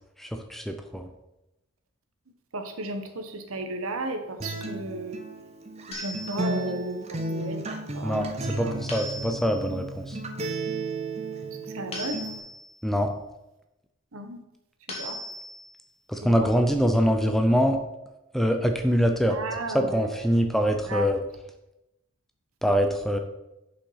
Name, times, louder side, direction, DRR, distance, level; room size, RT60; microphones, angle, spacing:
voice 1, 0.2-1.1 8.0-8.3 8.6-10.2 12.8-13.1 16.1-17.8 18.3-19.4 19.7-21.2 22.6-23.2, equal, ahead, 5 dB, 0.5 m, -24 dB
voice 2, 2.5-5.2 5.9-8.8 11.7-12.3 14.1-14.4 15.0-15.2 16.2-16.5 19.3-20.1 20.9-21.1, right 2 dB, 75° right, 6 dB, 1.1 m, -34 dB
Acoustic guitar, 4.4-12.4, right 2 dB, 30° right, 0.8 m, -33 dB
sound 1, 5.9-6.8 8.9-9.8 11.9-12.8 14.9-15.8, left 1 dB, 30° left, 1.5 m, -38 dB
7.0 x 5.5 x 5.6 m, 0.93 s
head